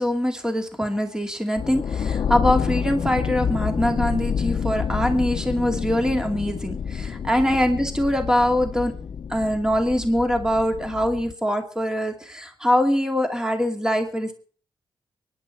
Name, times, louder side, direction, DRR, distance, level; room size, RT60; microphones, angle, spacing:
voice 1, 0.0-8.9 9.3-14.3, equal, 10° right, 4 dB, 2.5 m, -23 dB
sound 1, 1.6-11.3, left 7 dB, 60° left, 0.7 m, -28 dB
23.5 x 10.5 x 4.3 m, 0.41 s
cardioid pair, 65°, 8 cm